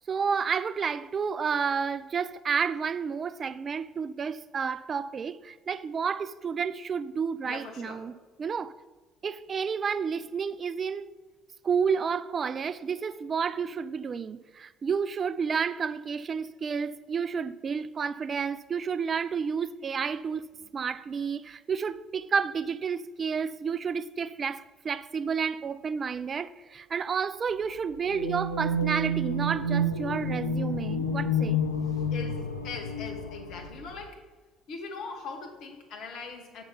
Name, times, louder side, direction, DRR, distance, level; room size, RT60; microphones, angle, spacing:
voice 1, 0.1-8.7 9.2-11.1 11.6-20.5 20.7-31.6, right 6 dB, 35° right, 0.3 m, -30 dB
voice 2, 7.4-8.1 31.9-34.2 34.7-36.6, left 4 dB, 55° left, 1.2 m, -41 dB
sound 1, 28.1-34.1, left 1 dB, 85° left, 0.4 m, -29 dB
6.4 x 5.8 x 5.6 m
figure-of-eight pair, 55°, 0 cm